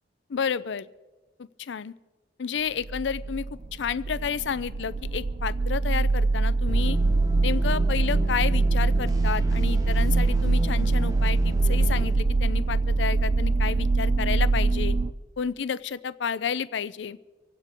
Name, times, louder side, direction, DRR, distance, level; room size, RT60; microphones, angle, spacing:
voice 1, 0.3-0.9 1.4-1.9 2.4-7.0 7.4-15.0 15.4-17.2, left 6 dB, 75° left, 17 dB, 0.5 m, -31 dB
sound 1, 2.8-15.1, right 3 dB, 45° right, 0.5 m, -23 dB
sound 2, 6.7-12.1, equal, 20° right, 0.9 m, -34 dB
25.5 x 9.0 x 4.5 m, 1.2 s
head